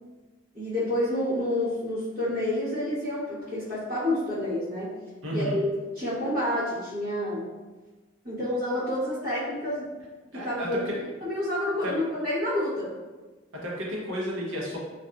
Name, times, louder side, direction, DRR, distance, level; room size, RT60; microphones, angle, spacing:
voice 1, 0.5-4.9 5.3-5.6 5.9-7.5 8.2-9.9 10.3-10.9 11.2-12.9, left 1 dB, 45° right, -13 dB, 1.0 m, -29 dB
voice 2, 5.2-5.6 10.3-11.0 11.8-11.9 13.6-14.8, equal, 80° right, -3 dB, 0.7 m, -32 dB
2.6 x 2.3 x 2.3 m, 1.2 s
head